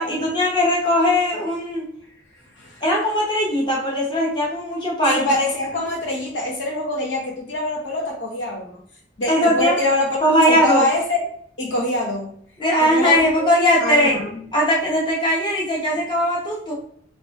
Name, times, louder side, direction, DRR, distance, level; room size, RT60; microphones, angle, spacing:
voice 1, 0.0-1.9 2.8-5.3 9.3-9.8 10.2-10.8 12.6-14.2 14.5-16.7, equal, 25° left, -4 dB, 1.1 m, -19 dB
voice 2, 5.0-8.8 9.2-10.2 10.5-11.2 11.6-12.4 12.8-13.5 13.8-14.4, left 1 dB, 90° left, -1 dB, 1.2 m, -24 dB
4.1 x 3.1 x 3.4 m, 0.64 s
head